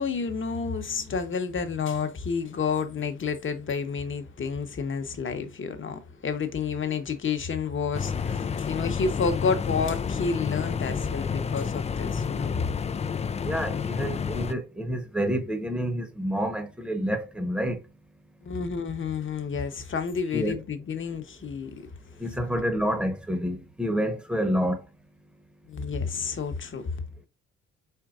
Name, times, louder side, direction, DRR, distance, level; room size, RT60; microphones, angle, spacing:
voice 1, 0.0-12.6 18.4-21.9 25.7-27.0, left 5 dB, 40° left, 1.0 m, -30 dB
sound 1, 7.9-14.5, left 6 dB, 20° left, 0.4 m, -30 dB
voice 2, 13.4-17.8 20.3-20.6 22.2-24.8, equal, 5° right, 1.0 m, -28 dB
4.6 x 4.5 x 2.5 m
cardioid pair, 90°, 30 cm